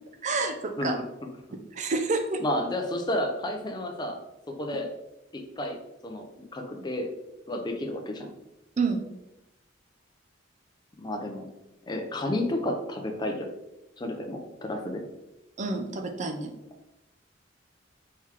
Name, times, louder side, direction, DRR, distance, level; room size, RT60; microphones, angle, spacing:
voice 1, 0.2-1.0 1.7-2.4 8.8-9.0 15.6-16.5, right 3 dB, 40° right, 6 dB, 0.5 m, -28 dB
voice 2, 2.4-4.2 4.6-4.9 5.3-5.8 6.0-7.1 7.5-8.3 11.0-11.5 11.9-13.5 14.0-15.0, left 1 dB, 25° left, 3 dB, 0.5 m, -31 dB
4.6 x 3.9 x 2.9 m, 0.93 s
head